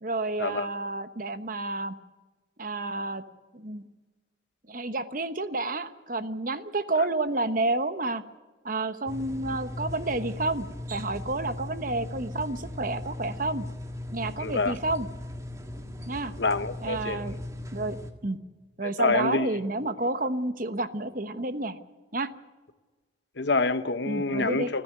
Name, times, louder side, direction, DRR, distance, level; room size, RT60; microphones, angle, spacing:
voice 1, 0.0-1.9 2.6-3.2 3.5-3.8 4.7-8.2 8.6-13.6 14.1-15.1 16.1-16.3 16.8-17.4 17.7-18.0 18.2-18.4 18.8-21.8 22.1-22.3 24.0-24.7, right 2 dB, 45° right, 1.1 m, -30 dB
sound 1, 9.1-18.1, left 1 dB, 15° right, 1.7 m, -38 dB
voice 2, 14.4-14.7 16.4-17.2 18.8-19.6 23.4-24.8, left 3 dB, 65° left, 1.0 m, -27 dB
29.0 x 10.5 x 9.6 m
head